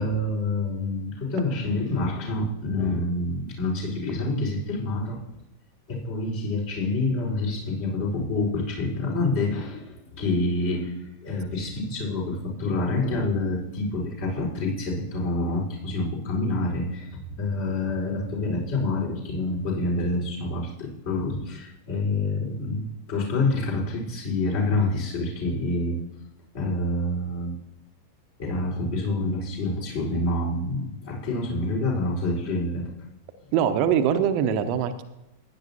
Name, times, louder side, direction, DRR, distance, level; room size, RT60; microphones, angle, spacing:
voice 1, 0.0-5.2 5.9-10.9 11.2-26.0 26.5-27.5 28.4-32.9, left 2 dB, 50° left, -3 dB, 4.4 m, -27 dB
voice 2, 33.5-35.0, right 8 dB, 45° right, 9 dB, 0.9 m, -22 dB
15.5 x 10.5 x 2.8 m, 0.93 s
figure-of-eight pair, 90°, 0 cm